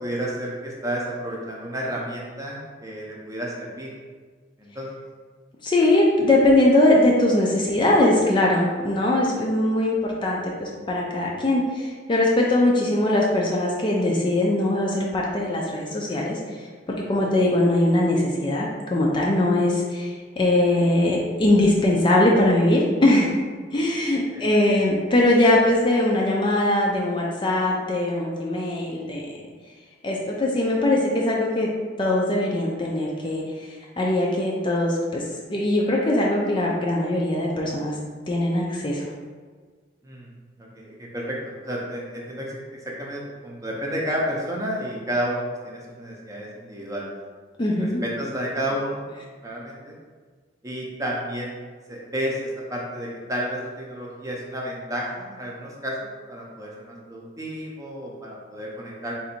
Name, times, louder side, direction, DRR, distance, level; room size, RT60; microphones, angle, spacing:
voice 1, 0.0-3.9 4.6-4.9 24.3-24.5 40.0-40.3 40.6-41.4 41.6-47.1 47.8-49.0 49.4-49.9 50.6-51.6 51.9-59.1, equal, 15° right, -3 dB, 0.6 m, -31 dB
voice 2, 5.6-23.3 23.7-29.3 30.0-31.7 32.0-33.7 34.0-38.0 38.3-39.0 47.6-48.0, left 1 dB, 25° left, -2 dB, 0.4 m, -21 dB
3.8 x 2.6 x 4.3 m, 1.5 s
head